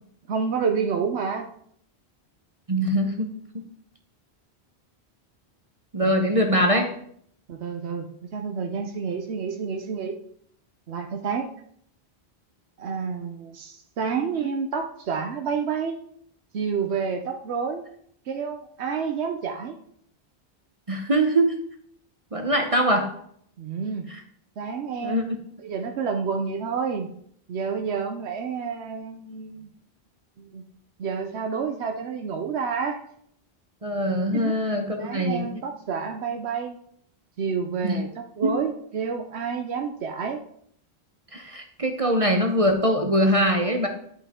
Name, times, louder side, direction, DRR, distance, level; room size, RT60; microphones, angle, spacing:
voice 1, 0.3-1.5 7.5-8.1 8.3-10.2 10.9-11.5 12.8-16.0 16.5-17.8 18.3-19.8 23.6-24.1 24.6-25.2 25.6-27.1 27.5-29.7 30.4-30.6 31.0-33.0 34.3-34.6 35.0-36.8 37.4-40.4, right 6 dB, 85° right, 4 dB, 1.0 m, -29 dB
voice 2, 2.7-3.3 5.9-6.9 20.9-21.6 22.3-23.1 24.1-24.2 25.0-25.2 33.8-35.5 37.8-38.0 38.4-38.6 41.3-43.9, equal, 35° right, 4 dB, 0.9 m, -22 dB
10.0 x 5.5 x 3.6 m, 0.65 s
omnidirectional pair, 1.1 m